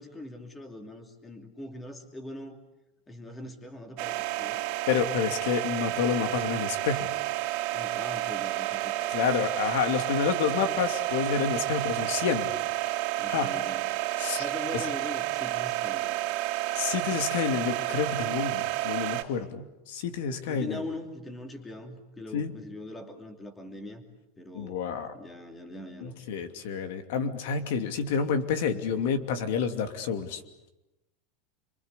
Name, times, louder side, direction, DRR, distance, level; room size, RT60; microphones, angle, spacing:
voice 1, 0.0-2.6 3.1-4.6 7.7-9.2 13.2-13.9 14.4-16.2 20.5-24.0 24.4-24.8 25.1-26.1, left 1 dB, 10° left, 6 dB, 2.7 m, -41 dB
sound 1, 4.0-19.2, right 16 dB, 45° right, 3.1 m, -30 dB
voice 2, 4.9-7.1 9.1-12.5 13.3-13.5 14.2-14.4 14.7-14.8 16.7-20.8 22.3-22.5 24.5-25.1 26.0-30.4, left 6 dB, 70° left, 8 dB, 2.7 m, -29 dB
29.0 x 23.5 x 8.3 m, 0.95 s
supercardioid pair, 165°, 0 cm